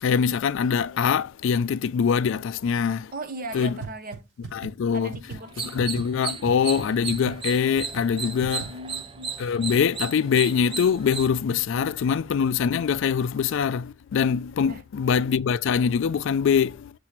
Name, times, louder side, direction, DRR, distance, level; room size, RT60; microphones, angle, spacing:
voice 1, 0.0-3.1 3.5-3.8 4.5-5.1 5.6-8.7 9.4-16.9, left 6 dB, 60° left, 0.3 m, -23 dB
voice 2, 3.1-4.3 4.9-5.8 6.3-6.4 8.4-9.3 14.6-14.8, right 1 dB, 40° right, 0.9 m, -38 dB
sound 1, 3.8-3.9 4.1-4.2 4.4-4.7 5.1-5.4 5.8-6.0 6.4-6.5 6.8-6.9 7.1-7.3 7.8-8.0 8.4-8.6, right 5 dB, 80° right, 4.2 m, -35 dB
sound 2, 5.4-11.3, right 5 dB, 25° right, 0.5 m, -35 dB
6.7 x 3.1 x 5.7 m
head